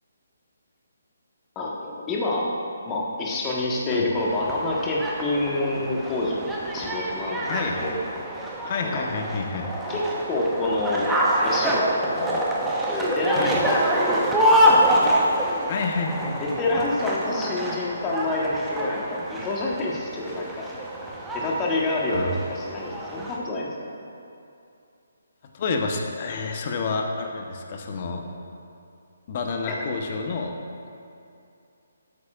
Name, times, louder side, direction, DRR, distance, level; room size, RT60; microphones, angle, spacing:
voice 1, 1.5-2.5 2.8-7.5 7.8-8.1 8.8-9.0 9.9-11.1 11.4-14.6 16.4-20.7 21.3-23.7 29.7-29.9, left 2 dB, 20° left, -3 dB, 1.4 m, -28 dB
sound 1, 4.2-23.4, equal, 5° right, 1.0 m, -26 dB
voice 2, 7.5-7.9 8.6-9.7 13.3-13.6 15.7-16.8 22.1-22.3 25.5-28.2 29.3-30.6, left 4 dB, 40° left, 3 dB, 1.0 m, -29 dB
13.0 x 8.6 x 2.5 m, 2.6 s
figure-of-eight pair, 140°, 0 cm